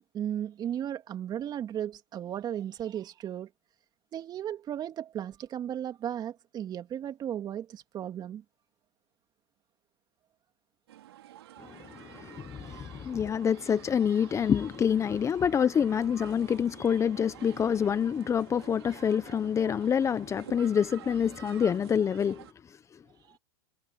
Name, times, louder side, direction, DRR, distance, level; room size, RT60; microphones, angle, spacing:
voice 1, 0.1-3.5 4.1-8.4 23.2-23.4, right 10 dB, 30° right, 3.0 m, -35 dB
sound 1, 10.9-22.5, right 13 dB, 80° right, 4.2 m, -49 dB
voice 2, 11.6-22.5, left 8 dB, 20° left, 1.1 m, -27 dB
hypercardioid pair, 110°, 13 cm